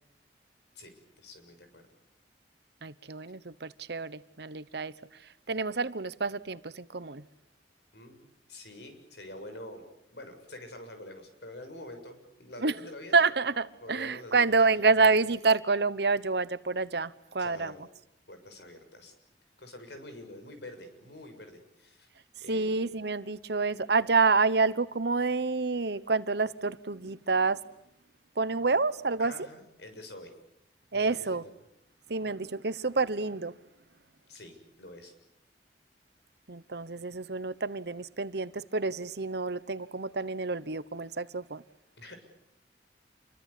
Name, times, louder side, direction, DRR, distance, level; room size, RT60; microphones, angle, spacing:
voice 1, 0.7-1.8 7.9-9.8 10.1-13.2 13.8-15.1 17.4-17.8 18.3-19.1 19.6-22.1 22.4-22.8 29.2-30.3 30.9-31.6 34.3-35.1 42.0-42.2, left 1 dB, 70° left, 6.8 m, -46 dB
voice 2, 2.8-4.9 5.5-7.2 12.6-12.7 13.1-17.7 22.5-27.6 28.4-29.3 30.9-31.4 32.1-33.5 36.5-41.6, right 4 dB, 65° right, 1.1 m, -28 dB
29.0 x 23.5 x 8.5 m
head